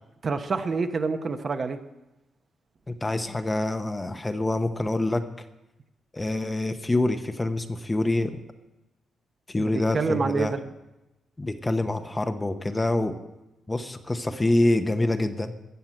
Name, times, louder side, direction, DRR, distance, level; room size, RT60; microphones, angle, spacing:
voice 1, 0.2-1.8 9.7-10.6, right 4 dB, 40° right, 8 dB, 1.0 m, -27 dB
voice 2, 2.9-5.2 6.1-8.3 9.5-10.6 11.4-13.1 13.7-15.5, left 2 dB, 15° left, 8 dB, 0.8 m, -26 dB
13.5 x 7.9 x 8.8 m, 0.98 s
cardioid pair, 120°, 0 cm